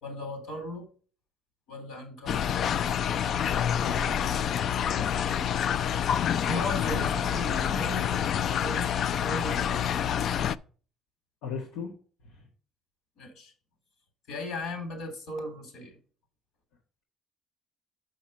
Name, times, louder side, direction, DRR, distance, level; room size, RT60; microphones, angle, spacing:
voice 1, 0.0-0.9 1.7-2.4 5.2-5.6 6.4-10.0 13.2-13.5 14.3-16.0, left 2 dB, 70° left, 5 dB, 3.5 m, -37 dB
sound 1, 2.3-10.6, left 9 dB, 50° left, 0.3 m, -27 dB
voice 2, 3.5-4.1 11.4-11.9 12.2-12.4, left 6 dB, 90° left, -1 dB, 1.7 m, -35 dB
6.3 x 6.2 x 5.4 m, 0.40 s
cardioid pair, 125°, 0 cm